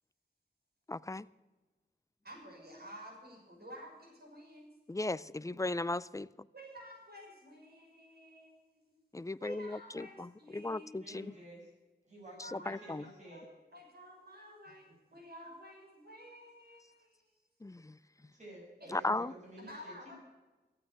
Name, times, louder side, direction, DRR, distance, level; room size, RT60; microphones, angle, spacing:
voice 1, 0.9-1.3 4.9-6.3 9.1-11.3 12.4-13.0 17.6-18.0 18.9-19.3, left 2 dB, 15° left, 19 dB, 0.5 m, -36 dB
voice 2, 2.2-4.7 6.5-8.8 9.4-11.2 12.4-13.4 13.7-17.3 18.8-19.0 19.7-20.2, equal, 60° right, 0 dB, 6.0 m, -52 dB
voice 3, 11.0-11.7 12.1-13.5 18.3-19.9, right 1 dB, 40° right, -3 dB, 6.9 m, -51 dB
15.0 x 8.7 x 8.9 m, 1.2 s
wide cardioid pair, 65°, 18 cm